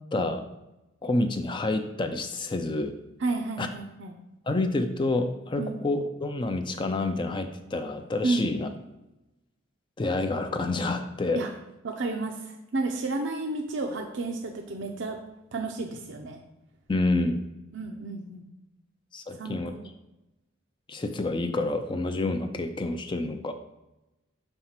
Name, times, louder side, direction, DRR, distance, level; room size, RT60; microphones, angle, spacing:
voice 1, 0.1-0.5 1.0-3.0 3.6-3.7 4.5-8.7 10.0-11.4 16.9-17.4 19.1-19.7 20.9-23.5, left 2 dB, 25° left, 7 dB, 0.4 m, -28 dB
voice 2, 3.2-4.2 5.6-5.8 8.2-8.4 11.3-11.5 11.8-15.2 15.5-16.4 17.7-18.4 19.4-19.9, right 3 dB, 60° right, 2 dB, 0.6 m, -31 dB
5.6 x 4.4 x 5.8 m, 0.97 s
head